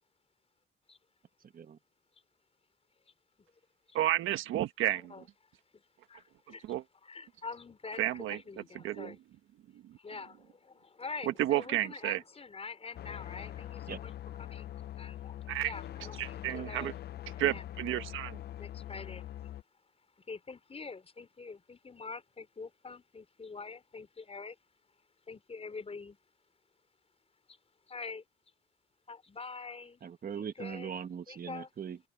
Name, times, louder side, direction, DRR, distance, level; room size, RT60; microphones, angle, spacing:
voice 1, 3.9-5.1 6.7-6.8 8.0-8.4 8.8-9.1 11.3-12.2 15.5-15.7 16.2-16.9 17.4-18.4, right 14 dB, 85° right, 1.4 m, -31 dB
voice 2, 4.9-5.2 5.7-5.8 6.1-6.6 7.0-9.2 10.0-14.1 14.4-15.3 15.6-17.0 17.3-17.6 18.6-19.2 20.2-24.6 25.3-26.2 27.5-27.6 27.9-28.2 29.1-30.0 30.3-30.9 31.3-31.7, left 4 dB, 30° left, 4.9 m, -45 dB
sound 1, 13.0-19.6, left 12 dB, 55° left, 0.6 m, -43 dB
voice 3, 30.0-32.0, right 7 dB, 45° right, 1.3 m, -40 dB
cardioid pair, 90°, 20 cm